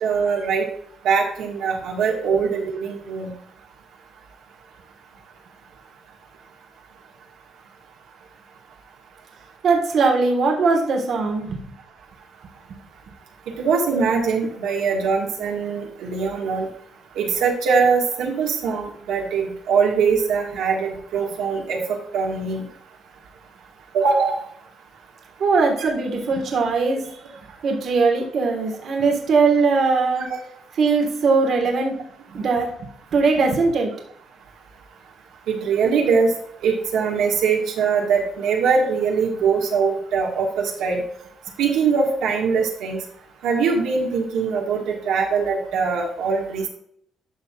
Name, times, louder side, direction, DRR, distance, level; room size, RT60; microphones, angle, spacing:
voice 1, 0.0-0.7 1.0-3.3 13.6-16.7 17.1-22.6 23.9-24.4 25.8-25.9 30.3-30.4 35.5-36.3 36.6-41.0 41.6-43.0 43.4-46.7, right 5 dB, 90° right, -1 dB, 1.6 m, -22 dB
voice 2, 9.6-11.6 12.7-12.8 25.4-27.0 27.6-30.3 30.8-31.9 32.3-33.9, right 4 dB, 65° right, 1 dB, 1.4 m, -20 dB
11.5 x 5.7 x 2.4 m, 0.65 s
cardioid pair, 90°, 0 cm